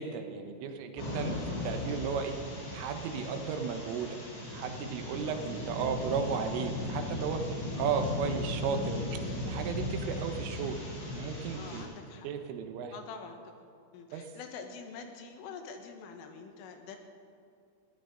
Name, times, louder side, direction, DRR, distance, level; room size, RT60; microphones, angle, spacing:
voice 1, 0.0-2.4 2.7-4.2 4.5-7.4 7.8-11.9 12.2-12.9 14.1-14.3, right 6 dB, 80° right, 6 dB, 3.5 m, -35 dB
sound 1, 1.0-11.8, left 1 dB, 60° left, 6.7 m, -37 dB
voice 2, 1.1-1.5 5.3-5.5 11.5-12.3 12.9-13.6 13.9-17.0, left 5 dB, 80° left, 5 dB, 3.7 m, -46 dB
21.0 x 15.5 x 3.8 m, 2.5 s
omnidirectional pair, 5.9 m